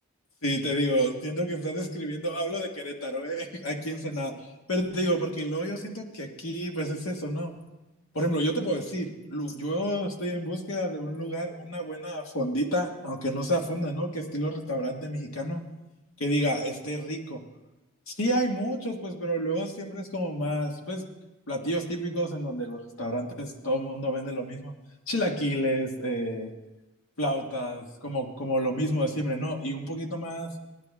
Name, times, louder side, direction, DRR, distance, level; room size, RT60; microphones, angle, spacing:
voice 1, 0.4-4.3 4.7-7.5 8.1-15.6 16.2-17.4 18.1-21.0 21.5-24.7 25.1-26.5 27.2-30.5, equal, 85° left, 2 dB, 1.8 m, -30 dB
18.0 x 10.5 x 3.6 m, 1.0 s
head